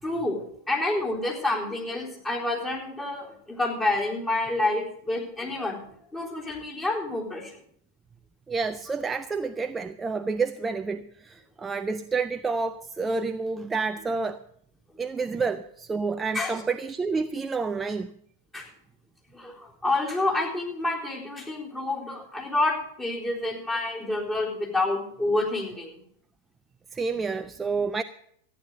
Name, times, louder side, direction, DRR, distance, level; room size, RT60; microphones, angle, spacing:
voice 1, 0.0-5.8 6.1-7.5 16.3-16.6 18.5-18.7 19.3-25.9, left 2 dB, 15° left, 3.9 m, -28 dB
voice 2, 8.5-14.4 15.0-18.1 26.9-28.0, right 4 dB, 15° right, 0.5 m, -29 dB
14.0 x 9.8 x 6.5 m
figure-of-eight pair, 90°, 0 cm